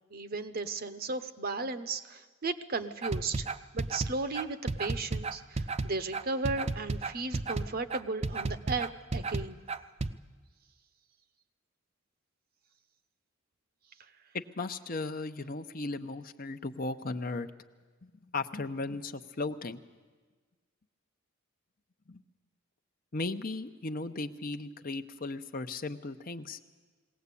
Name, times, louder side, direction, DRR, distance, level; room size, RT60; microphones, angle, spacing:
voice 1, 0.1-3.5 3.7-9.6, right 3 dB, 45° right, 10 dB, 0.9 m, -35 dB
sound 1, 3.0-10.1, right 3 dB, 30° right, 0.6 m, -33 dB
voice 2, 14.3-17.5 18.0-19.8 22.1-22.2 23.1-26.6, left 3 dB, 45° left, 8 dB, 0.8 m, -36 dB
21.0 x 17.5 x 8.4 m, 1.4 s
head